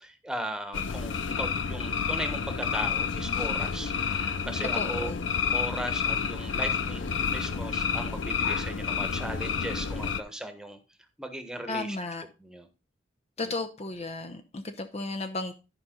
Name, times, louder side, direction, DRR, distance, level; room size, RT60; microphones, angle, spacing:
voice 1, 0.0-5.1 5.5-10.8 11.2-12.0 12.4-12.7 13.4-13.5, right 1 dB, 5° right, 6 dB, 1.2 m, -37 dB
sound 1, 0.7-10.2, left 6 dB, 75° left, 0.6 m, -29 dB
voice 2, 4.7-5.3 11.7-12.2 13.4-15.5, left 3 dB, 35° left, 7 dB, 0.7 m, -34 dB
13.0 x 5.4 x 3.8 m, 0.31 s
head